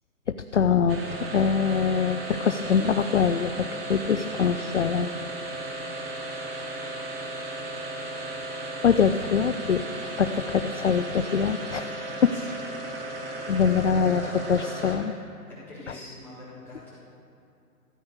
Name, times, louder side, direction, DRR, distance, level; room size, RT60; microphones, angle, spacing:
voice 1, 0.5-5.1 8.8-9.8 10.2-12.3 13.5-15.1, left 6 dB, 50° left, 8 dB, 0.4 m, -24 dB
sound 1, 0.9-15.2, right 1 dB, 35° right, 1.9 m, -35 dB
voice 2, 13.8-14.4 15.5-17.0, left 2 dB, 5° left, -13 dB, 3.8 m, -45 dB
14.5 x 8.7 x 6.6 m, 2.6 s
hypercardioid pair, 155°, 47 cm